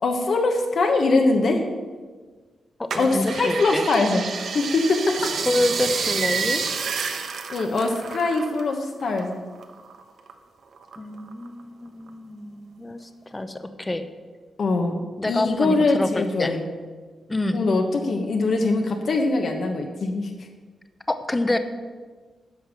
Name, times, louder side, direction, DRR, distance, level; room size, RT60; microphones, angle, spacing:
voice 1, 0.0-1.6 3.0-4.2 4.5-5.3 7.0-7.2 7.5-9.4 14.6-15.0 15.2-16.6 17.5-20.3, left 3 dB, 60° left, 3 dB, 1.2 m, -22 dB
voice 2, 2.8-3.9 5.5-6.6 11.0-14.0 15.2-16.6 17.3-17.6 21.1-21.6, left 2 dB, 20° left, 9 dB, 0.8 m, -27 dB
sound 1, 2.9-8.7 9.0-10.3 10.8-11.6 12.1-12.2, right 5 dB, 70° right, 1.0 m, -29 dB
10.5 x 5.5 x 7.5 m, 1.4 s
cardioid pair, 100°, 0 cm